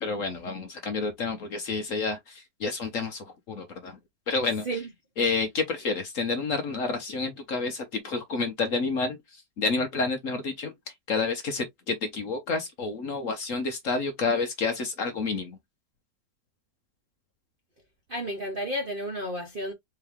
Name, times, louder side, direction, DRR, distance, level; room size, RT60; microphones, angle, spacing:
voice 1, 0.0-4.0 4.3-4.8 5.2-10.7 11.1-15.6, left 4 dB, 55° left, 1.0 m, -29 dB
voice 2, 18.1-19.7, right 1 dB, 40° right, 0.8 m, -31 dB
4.5 x 2.8 x 3.4 m
omnidirectional pair, 2.0 m